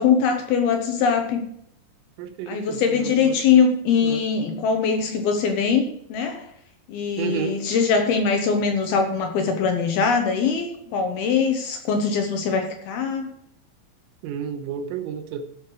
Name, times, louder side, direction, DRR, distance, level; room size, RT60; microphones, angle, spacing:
voice 1, 0.0-1.4 2.5-6.5 6.9-13.3, left 6 dB, 70° left, 5 dB, 2.4 m, -22 dB
voice 2, 2.2-3.6 4.0-4.3 7.2-7.6 14.2-15.5, right 8 dB, 85° right, 7 dB, 3.7 m, -31 dB
15.0 x 6.8 x 4.7 m, 0.69 s
omnidirectional pair, 5.8 m